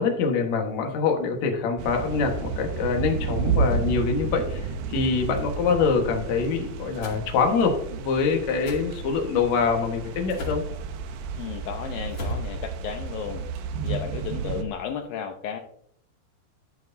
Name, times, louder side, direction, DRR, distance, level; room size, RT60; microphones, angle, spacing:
voice 1, 0.0-10.6, left 5 dB, 60° left, 2 dB, 1.9 m, -25 dB
sound 1, 1.8-14.6, right 5 dB, 75° right, 2.7 m, -31 dB
sound 2, 7.0-7.2 8.6-8.8 10.3-10.7 12.1-12.5, equal, 35° left, 2.4 m, -33 dB
voice 2, 11.4-13.5 13.8-15.6, left 7 dB, 85° left, 4 dB, 2.0 m, -33 dB
13.0 x 7.5 x 2.7 m, 0.66 s
omnidirectional pair, 5.1 m